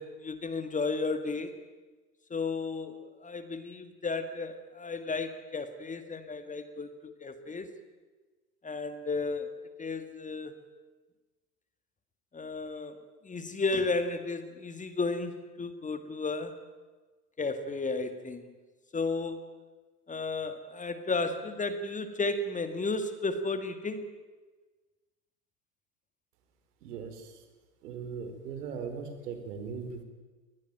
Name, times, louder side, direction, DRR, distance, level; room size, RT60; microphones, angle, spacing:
voice 1, 0.0-1.5 2.3-7.7 8.6-9.5 9.8-10.5 12.3-13.0 13.2-16.6 17.4-18.5 18.9-19.4 20.1-24.1, left 3 dB, 15° left, 9 dB, 2.0 m, -33 dB
voice 2, 26.8-27.4 27.8-30.0, right 6 dB, 70° right, 8 dB, 4.7 m, -39 dB
23.0 x 19.5 x 9.2 m, 1.3 s
hypercardioid pair, 100°, 48 cm